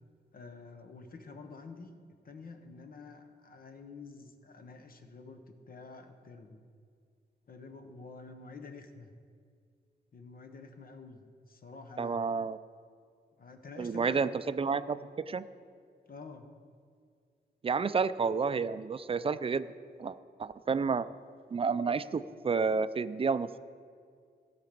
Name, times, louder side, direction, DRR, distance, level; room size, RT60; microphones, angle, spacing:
voice 1, 0.3-2.0 2.2-6.6 7.5-9.1 10.1-12.2 13.4-14.2 16.1-16.5, left 4 dB, 55° left, 7 dB, 1.0 m, -48 dB
voice 2, 12.0-12.6 13.8-14.3 14.6-15.0 15.3-15.5 17.6-19.7 20.0-21.1 21.5-23.5, right 5 dB, 30° right, 14 dB, 0.4 m, -30 dB
16.5 x 5.9 x 5.2 m, 2.2 s
cardioid pair, 90°, 18 cm